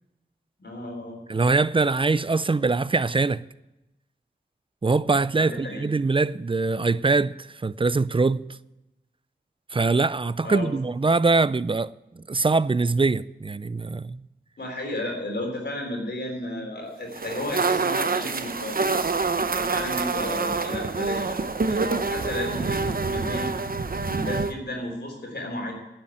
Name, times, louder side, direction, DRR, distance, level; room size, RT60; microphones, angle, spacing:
voice 1, 0.6-1.2 5.4-5.8 10.4-10.7 14.6-18.9 19.6-23.5 24.0-25.7, left 1 dB, 60° left, 3.5 m, -33 dB
voice 2, 1.3-3.4 4.8-8.5 9.7-14.2, right 3 dB, 30° right, 0.4 m, -23 dB
sound 1, 17.1-24.5, right 4 dB, 50° right, 0.8 m, -26 dB
9.9 x 7.9 x 9.0 m
cardioid pair, 45°, 19 cm